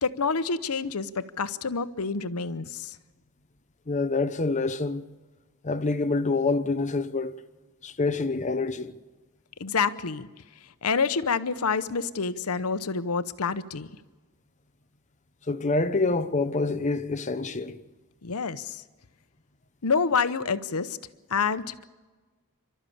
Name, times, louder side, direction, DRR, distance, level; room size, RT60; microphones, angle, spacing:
voice 1, 0.0-3.0 9.6-10.3 10.8-13.9 18.2-18.8 19.8-21.0 21.3-21.8, left 5 dB, 80° left, 0.9 m, -27 dB
voice 2, 3.9-5.1 5.6-7.4 7.8-8.9 15.5-17.8, left 3 dB, 35° left, 0.8 m, -26 dB
28.5 x 13.0 x 8.6 m
head